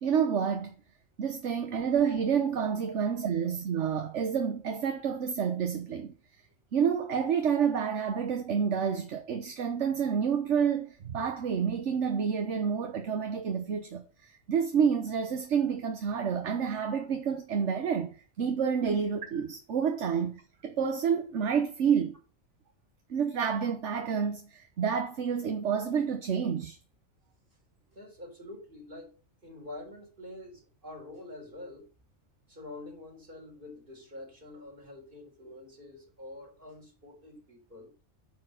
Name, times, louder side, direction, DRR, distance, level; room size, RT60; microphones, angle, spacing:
voice 1, 0.0-0.7 1.2-6.1 6.7-18.1 18.4-22.1 23.1-26.8, right 7 dB, 60° right, 1.2 m, -29 dB
voice 2, 27.9-31.9 32.5-37.9, left 2 dB, 40° right, 4.2 m, -46 dB
10.0 x 4.5 x 6.6 m
omnidirectional pair, 1.4 m